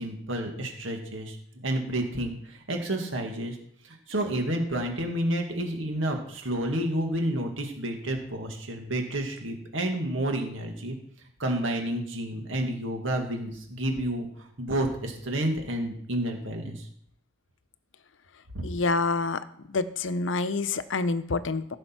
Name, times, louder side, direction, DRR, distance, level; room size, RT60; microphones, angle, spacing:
voice 1, 0.0-1.4 1.6-3.6 4.1-11.0 11.4-14.3 14.6-16.8 18.5-18.6, right 1 dB, 80° right, 3 dB, 1.9 m, -30 dB
voice 2, 18.6-19.4 19.7-21.8, left 3 dB, 75° left, 13 dB, 0.6 m, -27 dB
15.0 x 6.3 x 4.5 m, 0.69 s
head